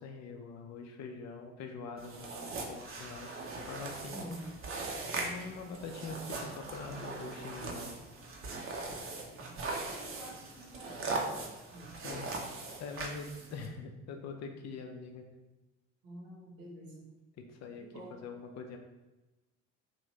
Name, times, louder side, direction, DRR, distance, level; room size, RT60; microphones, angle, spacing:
voice 1, 0.0-3.4 3.7-4.4 5.2-8.0 12.0-12.3 12.8-15.3 17.4-18.8, left 4 dB, 45° left, 4 dB, 0.5 m, -44 dB
sound 1, 2.0-13.7, right 3 dB, 35° right, 0.6 m, -40 dB
voice 2, 4.1-4.5 8.9-9.6 9.9-11.3 11.6-12.0 16.0-17.1 17.8-18.1, right 1 dB, 65° right, -3 dB, 1.1 m, -49 dB
3.0 x 2.5 x 3.1 m, 1.1 s
figure-of-eight pair, 50°, 38 cm